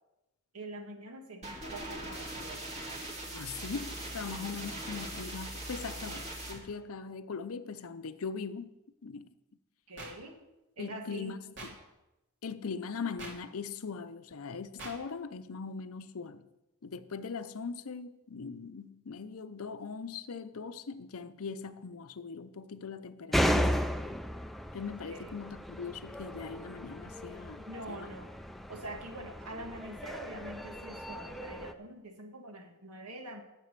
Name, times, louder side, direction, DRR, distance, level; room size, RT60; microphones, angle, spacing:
voice 1, 0.5-2.7 4.3-4.7 9.9-10.4 10.8-11.4 25.1-25.3 27.7-28.3 28.7-33.4, right 1 dB, 80° right, 1.7 m, -45 dB
sound 1, 1.4-6.6, right 1 dB, 30° right, 2.2 m, -41 dB
voice 2, 3.3-8.7 9.0-9.3 10.8-11.4 11.6-11.8 12.4-16.5 16.8-23.7 24.7-28.1, left 5 dB, 70° left, 0.6 m, -40 dB
sound 2, 10.0-10.1 11.6-11.7 13.2-13.3 14.8-14.9, right 2 dB, 55° right, 2.8 m, -42 dB
sound 3, 23.3-31.7, equal, ahead, 0.4 m, -35 dB
10.0 x 7.7 x 6.6 m
head